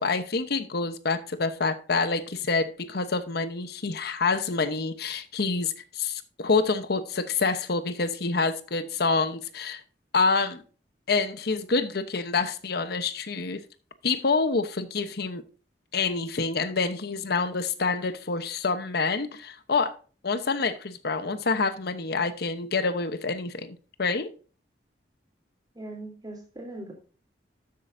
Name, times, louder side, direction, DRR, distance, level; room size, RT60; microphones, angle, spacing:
voice 1, 0.0-9.8 10.1-10.6 11.1-13.6 14.0-15.4 15.9-20.0 20.2-24.3, left 4 dB, 65° left, 0.9 m, -27 dB
voice 2, 25.7-26.9, right 2 dB, 25° right, 3.4 m, -40 dB
12.5 x 7.7 x 2.7 m
head